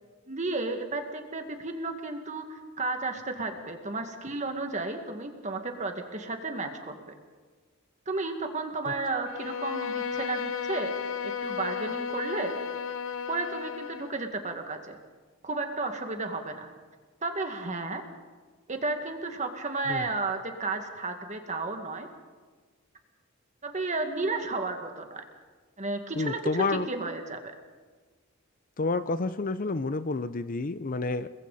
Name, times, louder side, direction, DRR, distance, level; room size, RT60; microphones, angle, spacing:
voice 1, 0.3-7.0 8.1-11.1 11.4-12.6 13.3-15.0 15.4-16.7 17.2-18.0 18.7-22.1 23.6-25.2 25.8-27.5, right 3 dB, 35° right, 5 dB, 2.0 m, -33 dB
Bowed string instrument, 9.2-14.2, left 7 dB, 70° left, 0.9 m, -34 dB
voice 2, 26.2-26.9 28.8-31.3, left 3 dB, 40° left, 13 dB, 0.6 m, -29 dB
29.5 x 21.5 x 4.2 m, 1.4 s
head